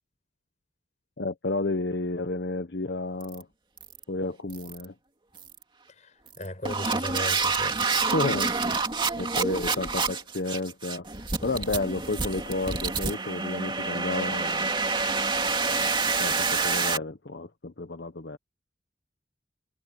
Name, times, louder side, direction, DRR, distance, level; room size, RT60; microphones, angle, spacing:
voice 1, 1.2-3.5 4.1-4.9 8.1-8.5 9.2-14.7 15.7-15.9 16.2-18.4, left 2 dB, 70° left, 1.0 m, -31 dB
sound 1, 3.2-3.4 3.8-4.0 4.5-4.8 5.4-5.6 6.3-17.0, right 4 dB, 30° right, 2.5 m, -28 dB
voice 2, 6.0-7.8, left 1 dB, 45° left, 5.5 m, -36 dB
head